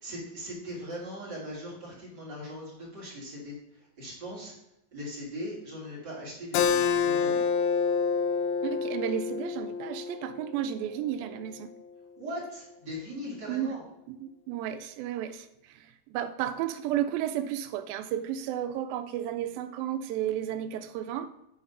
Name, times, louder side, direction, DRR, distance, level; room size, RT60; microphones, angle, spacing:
voice 1, 0.0-4.5 4.9-7.4 12.2-13.8, equal, 30° right, -5 dB, 2.5 m, -40 dB
Keyboard (musical), 6.5-11.7, left 6 dB, 85° left, 1.7 m, -28 dB
voice 2, 8.6-11.7 13.5-13.7 14.1-21.3, right 10 dB, 80° right, 9 dB, 2.4 m, -33 dB
8.4 x 4.2 x 5.4 m, 0.85 s
omnidirectional pair, 4.2 m